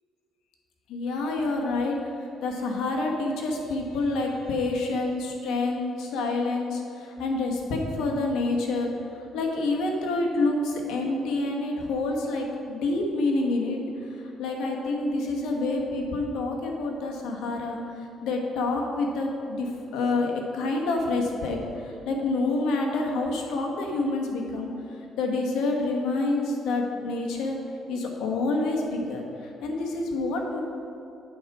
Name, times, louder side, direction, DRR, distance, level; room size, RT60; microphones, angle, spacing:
voice 1, 0.9-27.6 27.9-30.6, left 2 dB, 85° left, 1 dB, 1.3 m, -28 dB
8.9 x 4.8 x 6.1 m, 2.8 s
cardioid pair, 105°, 0 cm